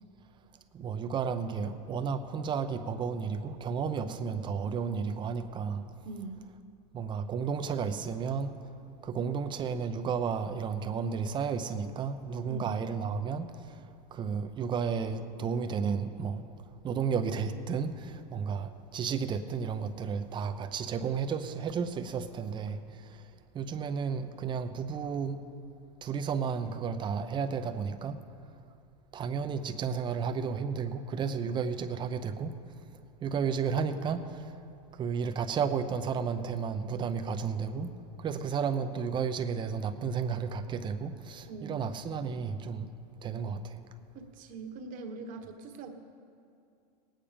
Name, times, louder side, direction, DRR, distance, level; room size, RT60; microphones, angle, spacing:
voice 1, 0.7-5.9 6.9-8.7 9.0-16.4 16.8-25.4 26.0-28.2 29.1-32.5 33.2-34.6 34.9-37.9 38.2-42.9 43.2-43.8, right 6 dB, 25° right, 0.7 m, -33 dB
voice 2, 6.0-6.4 12.5-12.8 41.4-41.9 44.1-45.9, right 3 dB, 40° right, 1.3 m, -42 dB
19.5 x 8.9 x 5.1 m
supercardioid pair, 130°, 20 cm